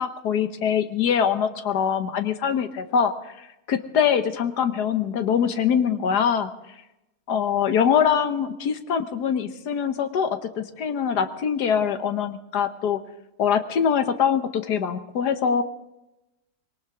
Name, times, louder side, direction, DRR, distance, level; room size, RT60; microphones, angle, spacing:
voice 1, 0.0-3.1 3.7-6.5 7.3-13.0 13.4-15.6, left 7 dB, 75° left, 9 dB, 1.5 m, -23 dB
21.0 x 18.5 x 3.7 m, 0.93 s
omnidirectional pair, 1.8 m